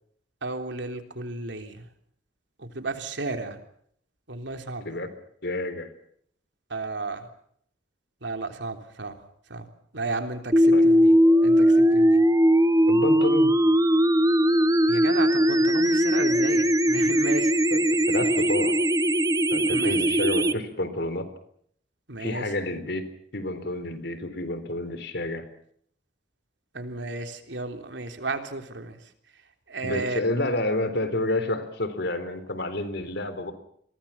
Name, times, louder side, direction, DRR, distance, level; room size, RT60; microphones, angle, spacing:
voice 1, 0.4-1.9 2.6-3.6 4.3-4.9 6.7-7.3 8.2-9.2 9.5-9.7 9.9-11.1 11.4-12.2 14.9-17.5 19.7-20.0 22.1-22.5 26.7-29.0 29.7-30.2, right 3 dB, 70° right, 6 dB, 3.6 m, -33 dB
voice 2, 5.4-5.9 10.7-10.9 12.9-13.6 17.7-18.8 19.5-21.3 22.2-23.0 23.3-25.5 29.8-33.5, left 1 dB, 65° left, 11 dB, 3.8 m, -29 dB
sound 1, 10.5-20.5, equal, 20° right, 1.1 m, -20 dB
29.0 x 22.5 x 5.8 m, 0.66 s
head